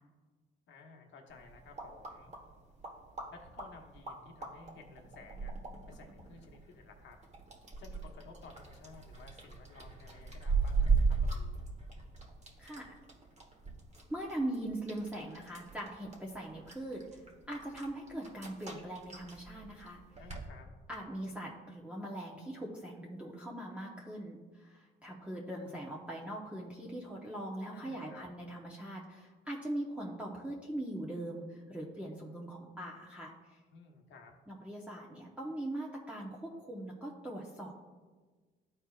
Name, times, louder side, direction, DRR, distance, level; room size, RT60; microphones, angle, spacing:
voice 1, 0.7-2.3 3.3-5.5 5.9-7.2 7.8-11.6 20.2-20.7 27.7-28.3 33.7-34.3, left 4 dB, 70° left, 2 dB, 1.2 m, -55 dB
sound 1, 1.3-20.5, right 4 dB, 35° right, 1.3 m, -38 dB
voice 2, 12.6-12.9 14.1-17.2 17.5-20.0 20.9-33.6 34.5-37.7, right 1 dB, 5° right, -3 dB, 0.9 m, -41 dB
12.5 x 4.4 x 2.4 m, 1.4 s
cardioid pair, 90°, 20 cm